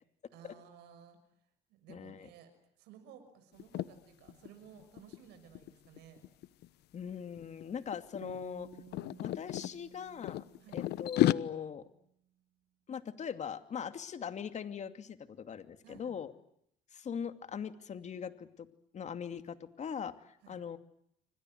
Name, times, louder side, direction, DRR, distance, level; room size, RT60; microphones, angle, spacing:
voice 1, 0.3-1.2 1.7-2.5 2.8-6.2 10.6-10.8 15.8-16.2 20.4-20.6, right 8 dB, 85° right, 8 dB, 6.7 m, -56 dB
voice 2, 1.9-2.3 6.9-8.7 9.2-10.4 10.7-11.8 12.9-16.3 16.9-18.7 18.9-20.8, left 7 dB, 45° left, 9 dB, 2.6 m, -41 dB
sound 1, 3.6-3.9 4.3-4.5 4.8-6.7 7.4-7.6 7.9-9.7 10.2-11.3, left 15 dB, 80° left, 1.0 m, -32 dB
sound 2, 8.2-11.7, right 11 dB, 70° right, 2.6 m, -55 dB
28.5 x 25.5 x 7.9 m, 0.74 s
cardioid pair, 110°, 17 cm